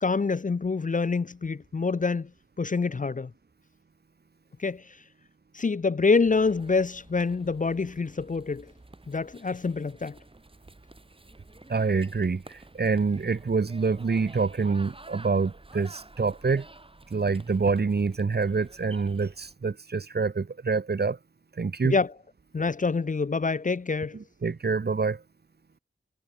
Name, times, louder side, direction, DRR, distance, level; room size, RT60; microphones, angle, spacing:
voice 1, 0.0-2.3 2.6-3.3 4.6-4.9 5.5-8.7 9.1-10.2 21.8-22.1 22.5-24.2, left 4 dB, 40° left, 0.6 m, -26 dB
sound 1, 6.2-19.5, right 2 dB, 25° right, 2.5 m, -51 dB
voice 2, 11.7-16.7 17.1-21.2 21.6-22.0 24.4-25.2, right 4 dB, 50° right, 1.0 m, -26 dB
wide cardioid pair, 85°, 21 cm